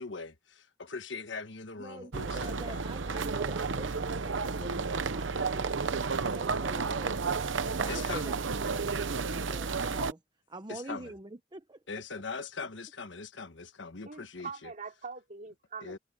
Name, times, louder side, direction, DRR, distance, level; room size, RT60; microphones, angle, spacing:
voice 1, 0.0-2.8 7.9-8.3 10.7-11.1 11.9-14.7 15.8-16.0, left 4 dB, 70° left, 1.4 m, -41 dB
voice 2, 1.8-7.4 7.8-10.2 10.5-11.8, right 2 dB, 25° right, 0.9 m, -45 dB
sound 1, 2.1-10.1, right 4 dB, 80° right, 0.8 m, -32 dB
voice 3, 14.0-16.0, right 5 dB, 45° right, 3.1 m, -43 dB
head